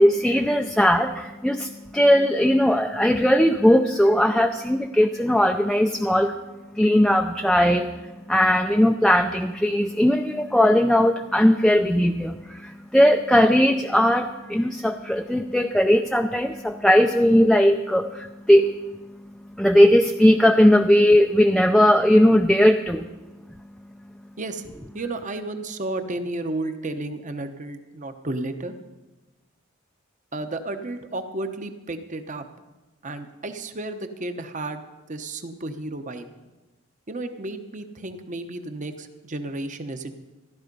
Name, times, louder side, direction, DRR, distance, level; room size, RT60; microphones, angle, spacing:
voice 1, 0.0-23.1, equal, ahead, 5 dB, 0.5 m, -19 dB
voice 2, 24.9-28.7 30.3-32.4 33.0-36.2 37.1-40.1, right 2 dB, 40° right, 8 dB, 1.0 m, -32 dB
14.5 x 12.0 x 5.4 m, 1.1 s
head